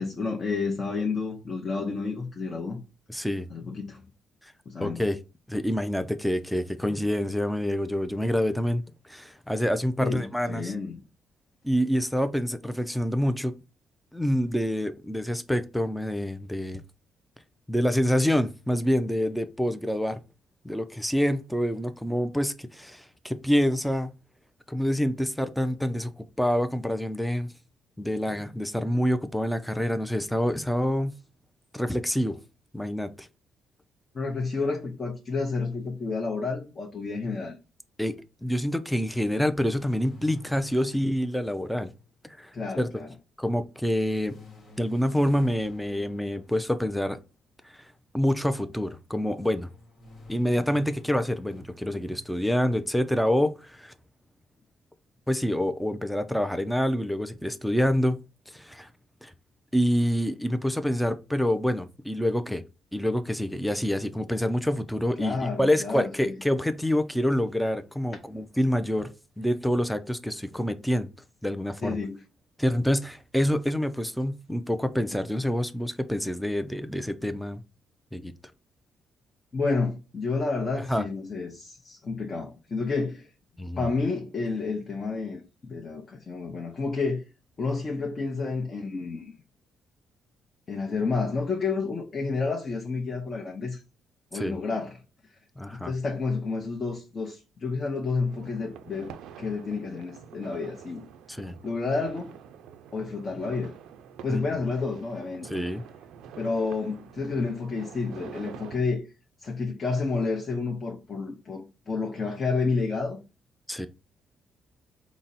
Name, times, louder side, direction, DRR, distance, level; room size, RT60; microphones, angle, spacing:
voice 1, 0.0-2.8 3.5-4.1 4.7-5.0 10.0-11.0 34.1-37.6 42.5-43.1 65.2-66.3 71.8-72.2 79.5-83.3 83.8-87.2 87.6-89.3 90.7-93.8 94.3-95.0 95.7-101.1 101.6-102.4 102.9-103.7 104.2-105.6 106.4-109.0 109.4-113.2, left 4 dB, 40° left, 0.7 m, -30 dB
voice 2, 3.1-3.5 4.4-4.5 4.8-5.2 5.5-10.7 11.6-13.5 14.1-16.8 17.7-20.2 20.6-24.1 24.7-27.5 28.0-31.2 31.7-32.4 32.7-33.3 38.0-38.2 38.4-41.9 42.2-42.9 43.4-44.4 44.8-47.2 48.1-49.7 50.3-53.9 55.3-58.2 58.5-58.9 59.2-59.3 59.7-62.6 62.9-69.1 69.4-71.1 71.4-72.0 72.6-77.6 78.1-78.3 80.9-81.0 83.6-83.9 94.3-94.6 95.6-95.9 101.3-101.6 104.3-104.4 105.5-105.8 113.7-113.9, equal, ahead, 0.3 m, -27 dB
sound 1, 39.0-42.6 44.2-47.3 49.4-51.6, left 2 dB, 60° left, 1.1 m, -49 dB
sound 2, 98.2-108.8, right 8 dB, 85° right, 0.3 m, -47 dB
3.9 x 2.0 x 4.0 m
cardioid pair, 90°, 0 cm